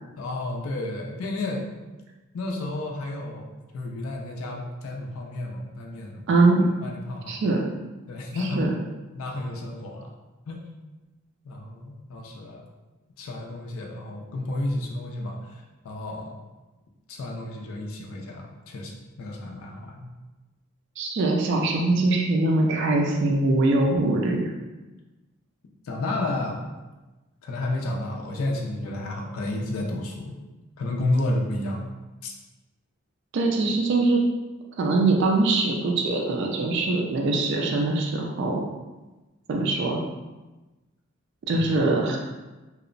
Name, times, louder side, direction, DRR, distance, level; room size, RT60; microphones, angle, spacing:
voice 1, 0.2-1.7 2.3-3.5 3.7-6.3 6.8-7.4 8.1-8.7 9.1-10.1 10.5-10.6 11.4-12.6 13.2-16.4 17.1-20.1 25.8-26.6 27.4-30.3 30.8-31.9 32.2-32.3 41.5-41.7, left 2 dB, 70° left, 0 dB, 0.4 m, -31 dB
voice 2, 6.3-6.7 7.3-7.6 8.5-8.7 21.0-24.5 33.3-34.2 34.8-38.6 39.5-40.0 41.5-42.2, right 2 dB, 55° right, 1 dB, 0.3 m, -22 dB
2.8 x 2.0 x 2.5 m, 1.1 s
head